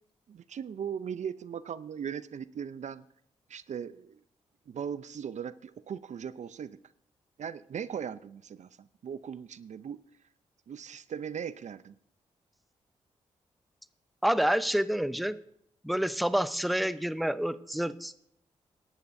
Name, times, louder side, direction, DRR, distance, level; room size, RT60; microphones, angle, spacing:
voice 1, 0.3-3.0 3.5-4.2 4.7-6.8 7.4-10.0 10.7-11.9, right 7 dB, 65° right, 15 dB, 0.5 m, -38 dB
voice 2, 14.2-15.3 15.8-18.1, equal, ahead, 14 dB, 0.6 m, -28 dB
18.0 x 11.5 x 2.7 m, 0.69 s
supercardioid pair, 45°, 13 cm